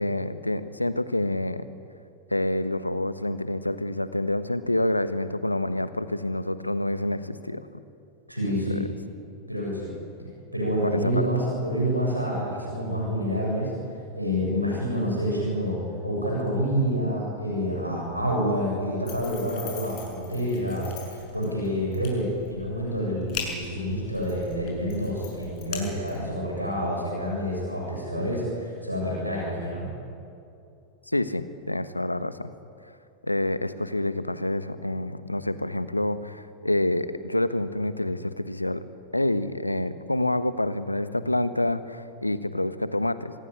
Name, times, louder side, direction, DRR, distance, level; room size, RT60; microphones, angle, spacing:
voice 1, 0.0-1.7 2.3-7.7 8.5-8.9 10.8-11.3 31.1-32.5 33.2-38.8 39.1-43.3, left 1 dB, 85° left, 13 dB, 1.3 m, -27 dB
voice 2, 8.3-8.8 9.5-9.9 10.5-13.7 14.2-29.9, equal, 90° right, -3 dB, 7.7 m, -28 dB
sound 1, 19.1-26.4, left 7 dB, 40° left, 6.4 m, -41 dB
26.0 x 19.0 x 9.9 m, 2.6 s
figure-of-eight pair, 90°, 0 cm